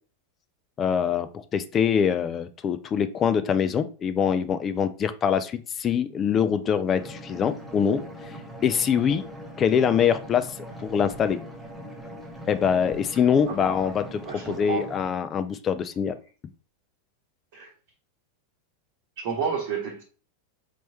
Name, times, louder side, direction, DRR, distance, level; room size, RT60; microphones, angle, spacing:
voice 1, 0.8-8.4 8.6-9.3 9.6-11.4 12.5-16.2, left 7 dB, 25° left, 0.3 m, -24 dB
sound 1, 7.0-15.0, right 1 dB, 5° right, 0.9 m, -41 dB
voice 2, 13.5-13.8 14.2-14.9 17.5-17.7 19.2-20.0, right 6 dB, 45° right, 1.0 m, -31 dB
4.3 x 3.0 x 2.8 m
figure-of-eight pair, 90°, 0 cm